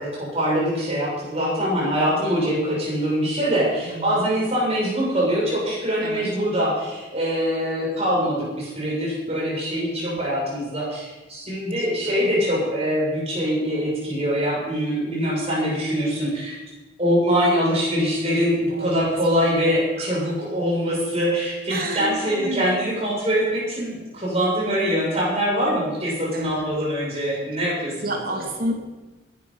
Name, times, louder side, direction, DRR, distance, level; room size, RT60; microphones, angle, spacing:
voice 1, 0.0-16.6 17.0-28.4, equal, 30° right, -4 dB, 7.1 m, -23 dB
voice 2, 3.9-4.3 6.0-6.3 10.0-10.2 12.1-12.2 18.7-20.2 21.7-22.8 26.3-26.7 28.0-28.8, right 1 dB, 50° right, 2 dB, 2.9 m, -31 dB
20.0 x 11.5 x 5.7 m, 1.1 s
head